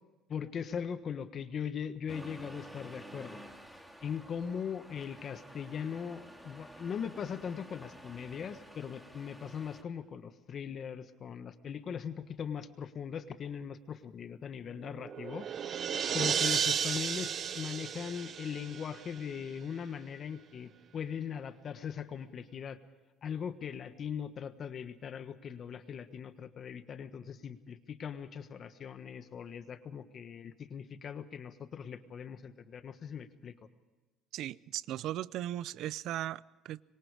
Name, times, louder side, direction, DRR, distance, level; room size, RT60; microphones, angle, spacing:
voice 1, 0.3-3.4 4.0-15.5 16.1-22.8 23.2-33.5, left 7 dB, 40° left, 1.3 m, -40 dB
Accelerating revving vroom, 2.1-9.8, equal, 5° right, 2.4 m, -51 dB
sound 1, 14.8-19.4, right 8 dB, 40° right, 0.9 m, -34 dB
voice 2, 34.3-36.8, right 13 dB, 65° right, 0.6 m, -37 dB
25.5 x 23.5 x 4.9 m
cardioid pair, 125°, 0 cm